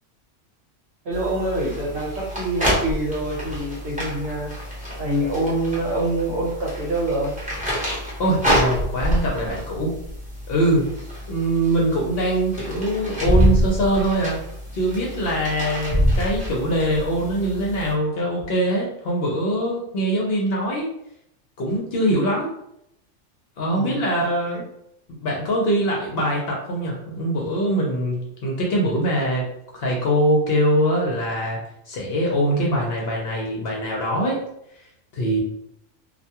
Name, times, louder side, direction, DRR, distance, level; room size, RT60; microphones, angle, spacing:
voice 1, 1.0-4.5 5.0-7.3 23.7-24.0 24.5-24.6, right 1 dB, 60° right, -4 dB, 1.1 m, -25 dB
sound 1, 1.1-17.9, equal, 5° right, 0.7 m, -26 dB
voice 2, 8.2-10.0 10.5-10.9 11.3-14.4 14.7-20.9 21.6-22.5 23.6-24.6 25.2-29.5 29.7-31.6 31.9-34.4 35.1-35.4, right 1 dB, 60° left, -2 dB, 0.7 m, -23 dB
2.3 x 2.2 x 2.8 m, 0.76 s
omnidirectional pair, 1.3 m